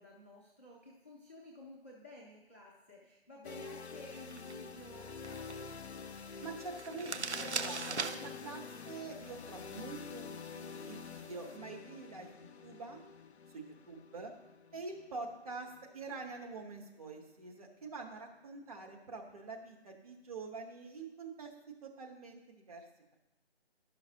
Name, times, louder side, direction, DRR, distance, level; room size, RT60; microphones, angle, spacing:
voice 1, 0.0-5.7 13.7-13.8, left 1 dB, 10° left, -7 dB, 0.5 m, -53 dB
sound 1, 3.4-17.3, left 6 dB, 75° left, 0.5 m, -48 dB
sound 2, 4.1-11.6, right 5 dB, 90° right, 0.6 m, -44 dB
voice 2, 6.4-13.0 13.5-14.3 14.7-21.5 21.8-22.8, right 4 dB, 35° right, 1 dB, 1.1 m, -46 dB
11.5 x 5.7 x 2.8 m, 0.98 s
figure-of-eight pair, 145°, 33 cm